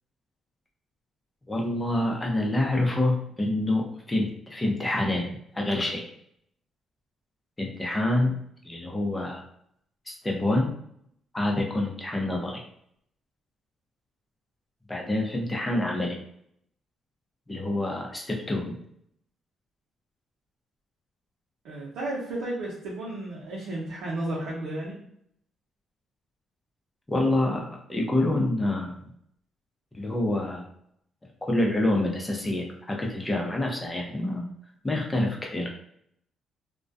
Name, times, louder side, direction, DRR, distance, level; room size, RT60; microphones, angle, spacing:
voice 1, 1.5-5.3 5.5-6.0 7.6-9.4 10.1-10.7 11.3-12.6 14.9-16.2 17.5-18.8 27.1-28.9 29.9-30.6 31.4-34.5 34.8-35.7, left 1 dB, 15° left, 0 dB, 0.7 m, -27 dB
voice 2, 21.6-25.0, right 1 dB, 85° right, -5 dB, 0.6 m, -33 dB
2.2 x 2.2 x 2.6 m, 0.70 s
cardioid pair, 90°, 0 cm